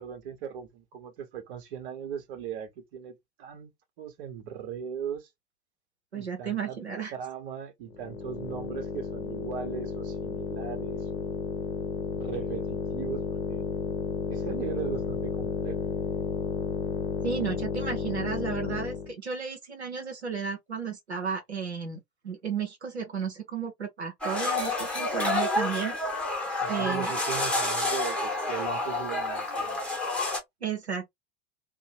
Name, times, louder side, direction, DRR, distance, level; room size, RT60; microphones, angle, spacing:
voice 1, 0.0-5.3 6.1-6.8 7.1-11.3 12.2-13.8 14.3-15.8 26.6-29.8, right 8 dB, 55° right, 1.0 m, -38 dB
voice 2, 6.1-7.1 17.2-26.0 26.7-27.1 30.6-31.1, right 6 dB, 85° right, 0.9 m, -33 dB
sound 1, 7.9-19.1, left 6 dB, 60° left, 0.7 m, -32 dB
sound 2, 24.2-30.4, left 2 dB, 5° left, 0.9 m, -29 dB
2.7 x 2.2 x 2.7 m
figure-of-eight pair, 75°, 32 cm